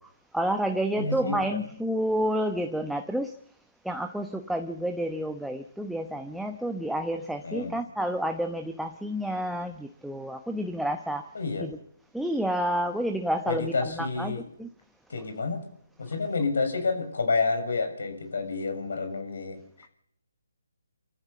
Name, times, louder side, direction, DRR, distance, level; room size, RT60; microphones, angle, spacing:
voice 1, 0.3-3.3 3.8-11.3 11.6-11.7 12.1-14.7, equal, ahead, 5 dB, 0.9 m, -29 dB
voice 2, 0.9-1.6 7.4-7.8 11.3-11.7 13.5-14.5 15.1-15.6 16.0-19.6, left 4 dB, 70° left, 8 dB, 6.9 m, -29 dB
25.0 x 14.0 x 8.6 m, 0.68 s
hypercardioid pair, 150°, 0 cm